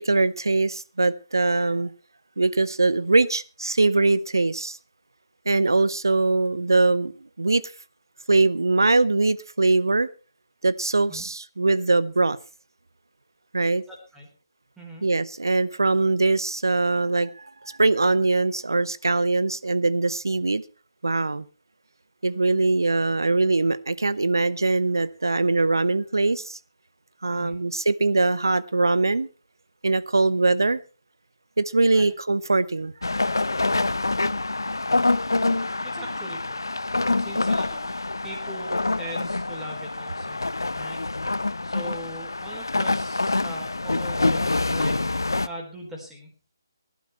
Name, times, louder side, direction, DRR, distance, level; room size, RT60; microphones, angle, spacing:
voice 1, 0.0-1.9 2.4-4.8 5.5-7.1 7.4-7.6 8.3-10.1 10.6-12.4 13.5-13.8 15.0-20.6 21.0-21.5 22.2-26.6 27.2-29.3 29.8-30.8 31.6-32.9, right 3 dB, 70° right, 0.8 m, -22 dB
voice 2, 13.9-14.3 14.8-15.1 27.3-27.6 31.9-32.1 35.9-36.6 37.2-37.8 38.2-40.4 40.8-41.0 41.6-46.3, right 1 dB, 5° right, 3.9 m, -40 dB
sound 1, 33.0-45.5, left 2 dB, 70° left, 0.6 m, -26 dB
18.0 x 11.5 x 4.3 m
figure-of-eight pair, 145°, 2 cm